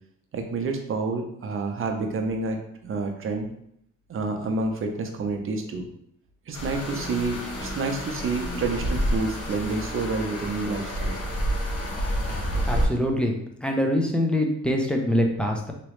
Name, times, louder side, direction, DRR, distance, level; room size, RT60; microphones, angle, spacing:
voice 1, 0.3-3.5 4.1-5.9 6.5-11.2, right 3 dB, 45° right, 4 dB, 0.7 m, -29 dB
sound 1, 6.5-12.9, equal, 55° left, 1.2 m, -29 dB
voice 2, 12.7-13.3 13.6-15.7, left 1 dB, 5° left, 1 dB, 0.6 m, -24 dB
3.0 x 3.0 x 3.1 m, 0.72 s
cardioid pair, 90°, 30 cm